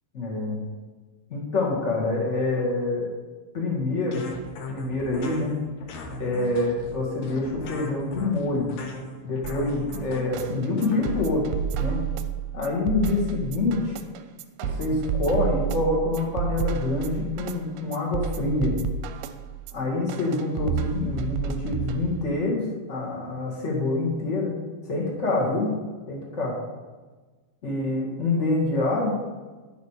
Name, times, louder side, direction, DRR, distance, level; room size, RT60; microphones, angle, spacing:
voice 1, 0.1-0.6 1.3-3.1 3.5-4.3 4.7-5.6 6.2-8.7 9.2-11.5 11.8-12.0 12.5-13.9 14.6-18.7 19.7-24.5 24.9-25.7 26.1-26.5 27.6-29.1, left 2 dB, 30° left, -2 dB, 1.3 m, -26 dB
mod bass, 4.1-11.2, left 2 dB, 70° left, 2.6 m, -38 dB
sound 1, 9.4-22.4, right 8 dB, 80° right, 2.3 m, -31 dB
11.0 x 6.8 x 4.8 m, 1.3 s
omnidirectional pair, 4.6 m